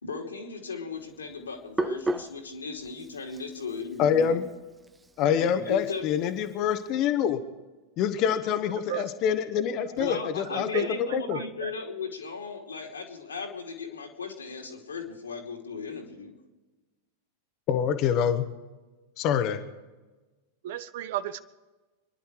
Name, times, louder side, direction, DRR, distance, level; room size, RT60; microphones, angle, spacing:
voice 1, 0.0-4.4 5.2-6.1 9.9-16.3, left 5 dB, 75° left, 1 dB, 2.9 m, -37 dB
Hands, 1.0-6.9, right 2 dB, 10° right, 0.7 m, -37 dB
voice 2, 4.0-4.4 5.2-7.4 8.0-11.4 17.7-18.5 19.2-19.6, left 8 dB, 40° left, 9 dB, 1.3 m, -26 dB
voice 3, 9.6-10.2 10.5-10.9 11.3-11.7 20.6-21.4, right 12 dB, 55° right, 15 dB, 0.8 m, -35 dB
27.0 x 11.0 x 4.7 m, 1.2 s
figure-of-eight pair, 90°, 0 cm